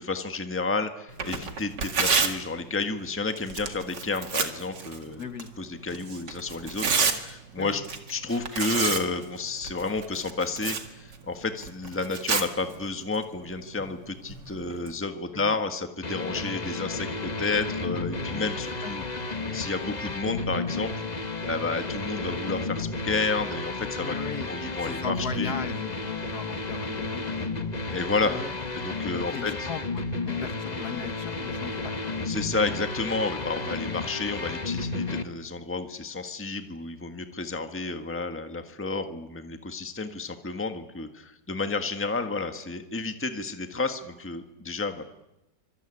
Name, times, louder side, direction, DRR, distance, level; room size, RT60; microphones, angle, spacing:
voice 1, 0.0-5.2 5.6-7.8 8.1-19.0 19.5-24.1 24.5-25.5 27.9-28.4 28.7-29.7 32.2-45.0, left 3 dB, 10° left, 7 dB, 1.4 m, -31 dB
Tearing, 1.1-14.9, right 5 dB, 75° right, 2.7 m, -32 dB
voice 2, 5.2-5.5 7.6-7.8 15.3-15.6 16.3-16.4 18.2-18.5 18.8-18.9 24.0-24.5 24.8-27.7 28.2-28.5 29.1-31.9, left 6 dB, 60° left, 9 dB, 2.0 m, -38 dB
sound 1, 16.0-35.2, left 3 dB, 25° left, 1.3 m, -32 dB
26.0 x 23.0 x 9.9 m, 0.95 s
omnidirectional pair, 1.9 m